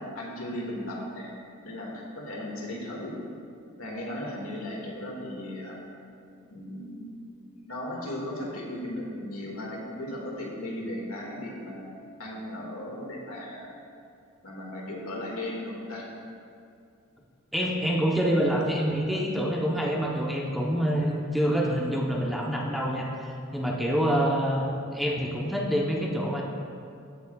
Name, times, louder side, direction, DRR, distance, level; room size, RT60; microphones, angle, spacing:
voice 1, 0.0-1.3 1.6-3.1 3.8-5.8 6.5-7.2 7.6-11.9 12.2-13.7 14.4-16.1, left 1 dB, 85° left, -2 dB, 1.8 m, -36 dB
voice 2, 17.5-23.1 23.5-26.4, equal, ahead, -3 dB, 0.7 m, -26 dB
14.5 x 8.1 x 2.3 m, 2.4 s
head